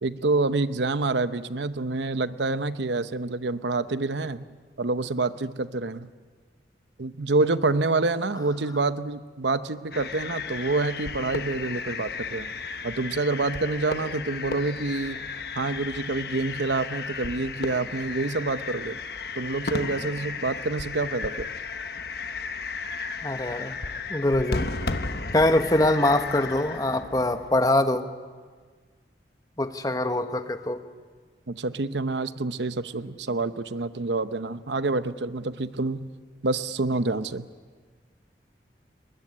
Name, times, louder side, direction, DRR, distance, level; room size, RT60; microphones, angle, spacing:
voice 1, 0.0-4.5 4.8-6.1 7.0-12.5 12.8-15.3 15.6-19.0 19.3-21.5 31.5-36.1 36.4-37.5, right 3 dB, 80° right, 13 dB, 0.8 m, -27 dB
sound 1, 9.9-27.6, left 4 dB, 65° left, 1.2 m, -34 dB
voice 2, 23.2-23.7 24.1-24.7 25.3-28.1 29.6-30.9, left 1 dB, 20° left, 9 dB, 1.1 m, -23 dB
22.5 x 21.0 x 9.8 m, 1.6 s
head